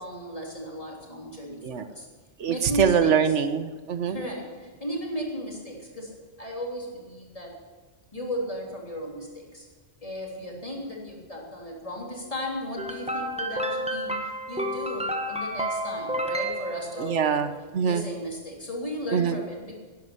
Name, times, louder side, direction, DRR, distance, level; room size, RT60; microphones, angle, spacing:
voice 1, 0.0-2.1 2.5-3.2 4.1-7.6 8.1-9.7 10.0-17.5 17.8-19.7, equal, 30° left, -2 dB, 3.5 m, -35 dB
voice 2, 2.4-4.2 17.0-18.1 19.1-19.3, right 7 dB, 80° right, 10 dB, 1.2 m, -24 dB
sound 1, 12.8-17.4, equal, 5° right, 1.2 m, -31 dB
12.5 x 10.5 x 9.8 m, 1.3 s
omnidirectional pair, 1.2 m